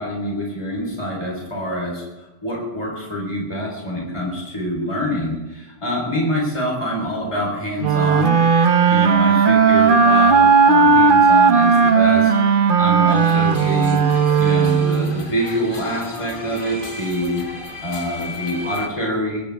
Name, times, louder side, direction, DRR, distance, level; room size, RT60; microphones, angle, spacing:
voice 1, 0.0-2.0 2.4-8.4 8.9-12.3 12.6-14.0 14.4-17.4 17.8-19.4, equal, 30° left, -1 dB, 4.2 m, -25 dB
sound 1, 7.8-15.3, right 5 dB, 55° right, 1.1 m, -15 dB
sound 2, 13.1-18.9, left 3 dB, 55° left, 2.0 m, -35 dB
22.5 x 15.5 x 3.5 m, 1.0 s
omnidirectional pair, 1.1 m